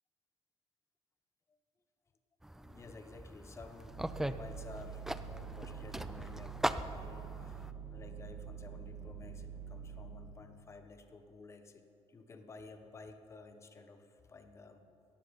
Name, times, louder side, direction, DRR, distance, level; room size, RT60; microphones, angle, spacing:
sound 1, 2.4-7.7, right 1 dB, 5° right, 0.3 m, -40 dB
voice 1, 2.5-14.9, left 3 dB, 25° left, 7 dB, 1.0 m, -53 dB
sound 2, 3.8-10.4, right 6 dB, 85° right, 2.0 m, -46 dB
18.0 x 14.5 x 5.3 m, 2.7 s
cardioid pair, 175°, 11 cm